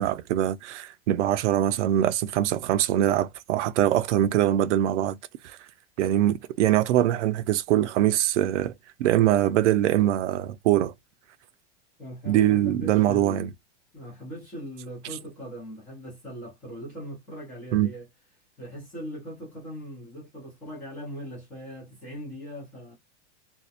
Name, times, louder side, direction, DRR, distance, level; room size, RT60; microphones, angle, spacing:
voice 1, 0.0-5.2 6.0-8.7 9.0-10.9 12.3-13.5 17.7-17.9, right 12 dB, 80° right, 0.5 m, -23 dB
voice 2, 12.0-13.5 13.9-18.1 18.6-22.9, equal, 5° left, 0.3 m, -40 dB
2.7 x 2.0 x 2.3 m
supercardioid pair, 180°, 35 cm